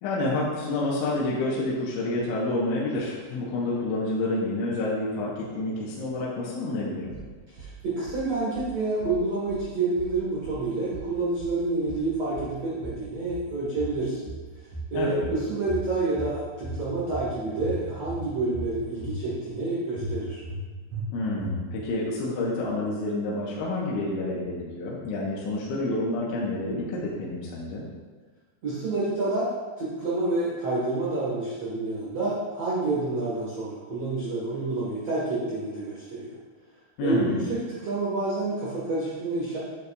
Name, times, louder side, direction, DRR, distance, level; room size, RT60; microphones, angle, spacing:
voice 1, 0.0-7.2 14.9-15.3 21.1-27.8 37.0-37.5, left 2 dB, 80° left, -5 dB, 3.4 m, -28 dB
sound 1, 7.1-7.7 8.0-8.7 9.0-9.7 10.0-10.6 10.9-11.6 11.9-12.6 12.8-13.5 13.8-14.5 14.7-15.4 15.7-16.3 16.6-17.3 17.6-18.2 18.5-19.2 19.5-19.6 20.0-20.6 20.9-21.0 21.4-21.9, right 2 dB, 45° right, 2.5 m, -37 dB
voice 2, 7.5-14.3 14.9-20.4 28.6-29.5 29.8-36.3 37.0-39.6, right 2 dB, 80° right, -8 dB, 1.4 m, -28 dB
9.6 x 8.2 x 2.4 m, 1.4 s
omnidirectional pair, 5.6 m